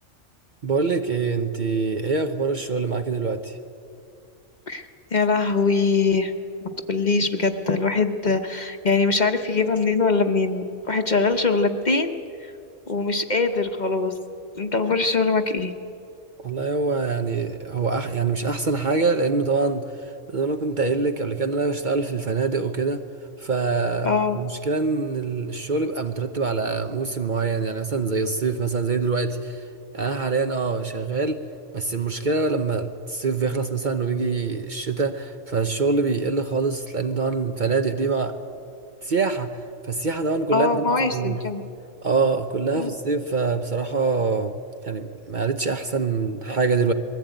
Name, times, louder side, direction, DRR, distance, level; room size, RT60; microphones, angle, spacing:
voice 1, 0.6-3.6 16.4-23.0 23.4-29.6 29.9-31.4 31.7-38.4 39.0-41.4 42.0-44.5 44.8-46.9, right 4 dB, 45° right, 7 dB, 0.8 m, -25 dB
voice 2, 4.7-6.3 6.9-12.1 12.4-12.5 12.9-14.1 14.5-15.7 24.0-24.4 40.5-41.6 42.7-42.9, left 4 dB, 40° left, 7 dB, 1.0 m, -22 dB
21.0 x 15.5 x 9.1 m, 2.5 s
omnidirectional pair, 1.3 m